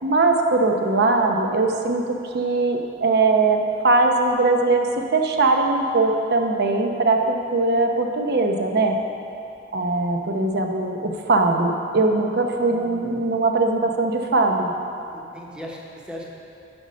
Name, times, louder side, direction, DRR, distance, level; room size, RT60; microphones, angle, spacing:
voice 1, 0.0-9.0 9.7-14.7, right 3 dB, 55° right, 3 dB, 0.8 m, -21 dB
voice 2, 12.7-13.2 15.1-16.2, equal, 5° right, -2 dB, 1.0 m, -38 dB
9.7 x 6.3 x 5.2 m, 2.7 s
head